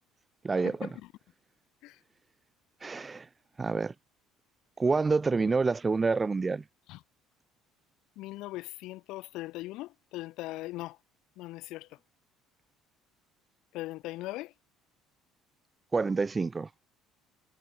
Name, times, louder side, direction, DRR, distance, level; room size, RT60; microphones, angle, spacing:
voice 1, 0.4-0.9 2.8-3.3 3.6-3.9 4.8-6.6 15.9-16.7, right 4 dB, 25° right, 0.4 m, -27 dB
voice 2, 8.2-11.0 11.4-11.9 13.7-14.5, left 18 dB, 70° left, 1.0 m, -39 dB
supercardioid pair, 90°, 0 cm